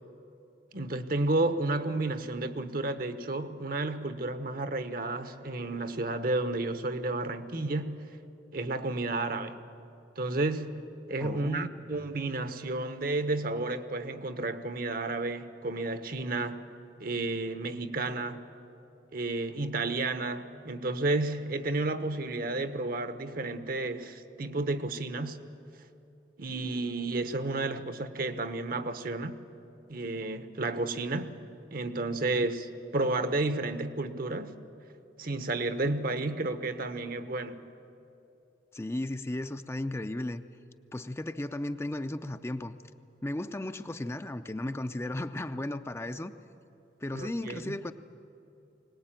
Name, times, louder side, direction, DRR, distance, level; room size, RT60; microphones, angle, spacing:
voice 1, 0.7-8.0 8.5-9.6 10.2-10.8 11.1-16.6 17.0-18.4 19.1-25.4 26.4-29.4 29.9-31.3 31.7-34.5 35.2-37.6 47.1-47.8, right 2 dB, 55° right, 10 dB, 1.0 m, -31 dB
voice 2, 11.2-12.0 32.3-32.5 38.7-40.4 40.9-42.7 43.2-46.3 47.0-47.9, left 1 dB, 15° left, 9 dB, 0.5 m, -35 dB
22.0 x 19.0 x 9.0 m, 2.8 s
head